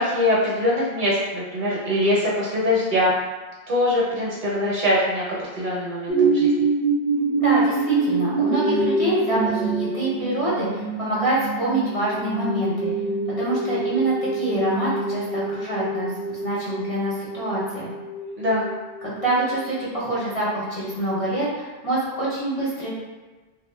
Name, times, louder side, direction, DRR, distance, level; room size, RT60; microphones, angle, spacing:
voice 1, 0.0-3.1 3.7-5.2 5.6-6.5 18.4-18.6, left 1 dB, 55° right, -5 dB, 0.8 m, -22 dB
sound 1, 6.1-19.6 20.1-20.2, right 3 dB, 15° right, 0.5 m, -25 dB
voice 2, 7.4-12.9 13.4-17.9 19.0-22.9, right 2 dB, 35° left, -8 dB, 0.8 m, -26 dB
2.5 x 2.0 x 3.2 m, 1.2 s
omnidirectional pair, 1.1 m